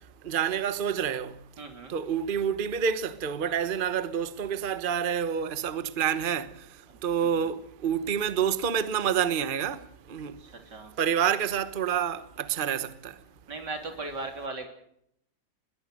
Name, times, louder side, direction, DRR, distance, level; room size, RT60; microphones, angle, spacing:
voice 1, 0.2-1.4 1.9-6.5 7.0-9.8 10.1-10.4 11.0-13.1, right 8 dB, 35° right, 1.2 m, -28 dB
voice 2, 1.6-1.9 6.9-7.0 7.4-7.5 10.4-10.9 13.5-14.7, right 3 dB, 90° right, 3.9 m, -38 dB
21.5 x 17.0 x 7.8 m
omnidirectional pair, 1.8 m